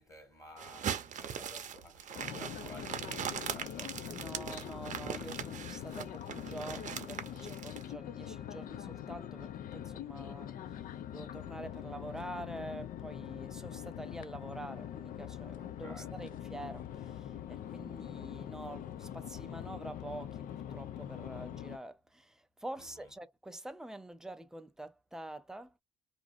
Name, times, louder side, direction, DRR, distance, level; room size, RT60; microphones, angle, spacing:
voice 1, 0.0-4.1 15.5-16.1 22.8-23.1, left 1 dB, 20° left, 1.5 m, -53 dB
sound 1, 0.6-7.8, right 8 dB, 45° right, 0.7 m, -40 dB
sound 2, 2.1-21.8, left 10 dB, 55° left, 0.5 m, -43 dB
voice 2, 4.1-25.7, right 1 dB, 5° right, 0.4 m, -46 dB
2.8 x 2.5 x 2.4 m
cardioid pair, 110°, 17 cm